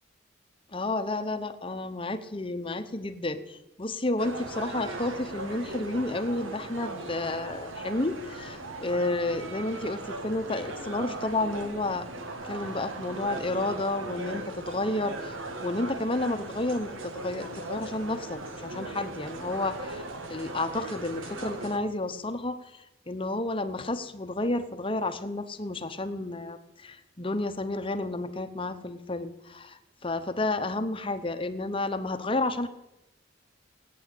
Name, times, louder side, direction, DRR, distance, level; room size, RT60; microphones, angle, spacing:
voice 1, 0.7-12.1 12.5-20.0 20.3-32.7, left 2 dB, 25° left, 9 dB, 0.9 m, -31 dB
sound 1, 4.2-21.8, right 2 dB, 90° right, 2.0 m, -38 dB
18.0 x 9.5 x 8.4 m, 0.92 s
head